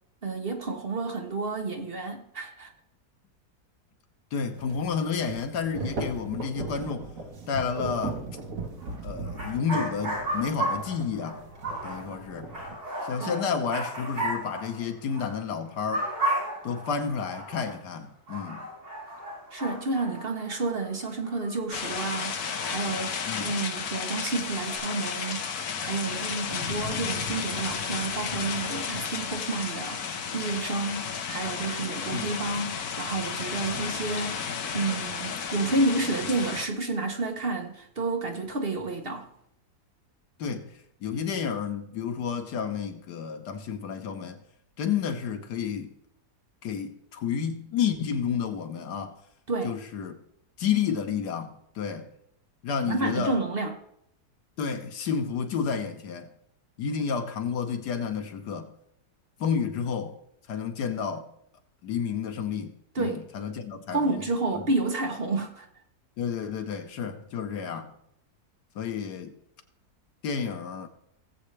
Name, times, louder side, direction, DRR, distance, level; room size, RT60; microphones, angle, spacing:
voice 1, 0.2-2.7 13.2-13.4 19.5-25.5 25.8-39.3 49.5-49.8 52.8-53.8 62.9-63.2 63.9-65.7, right 3 dB, 40° right, 1.0 m, -30 dB
voice 2, 4.3-7.1 7.5-8.2 9.0-11.4 11.8-12.5 13.0-16.1 16.6-18.7 23.3-23.6 32.1-32.3 40.4-40.7 41.0-44.4 44.8-45.9 46.6-49.2 49.6-50.2 50.6-52.1 52.6-53.4 54.6-56.3 56.8-58.7 59.4-60.2 60.5-61.3 61.8-64.3 64.5-64.6 66.2-67.9 68.7-69.3 70.2-70.9, left 6 dB, 85° left, 1.6 m, -31 dB
sound 1, 4.5-12.7, right 3 dB, 55° right, 1.6 m, -38 dB
sound 2, 8.8-9.0 9.3-15.4 15.6-17.8 18.3-22.1 22.4-24.8, right 1 dB, 70° right, 4.9 m, -35 dB
sound 3, 21.7-36.7, left 6 dB, 70° left, 1.4 m, -33 dB
18.5 x 7.7 x 3.3 m
omnidirectional pair, 1.7 m